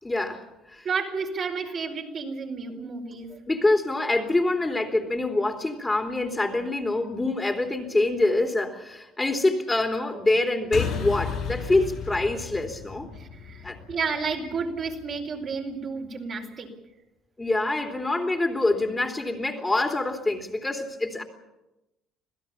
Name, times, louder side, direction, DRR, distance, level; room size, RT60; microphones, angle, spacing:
voice 1, 0.0-0.4 0.7-0.9 3.5-13.1 13.6-13.8 17.4-21.2, left 2 dB, 15° left, 3 dB, 3.4 m, -25 dB
voice 2, 0.8-3.4 13.1-16.7, right 5 dB, 50° right, 1 dB, 4.6 m, -31 dB
sound 1, 10.7-15.5, left 7 dB, 65° left, 5.9 m, -34 dB
26.5 x 16.0 x 7.2 m, 0.96 s
supercardioid pair, 70°, 0 cm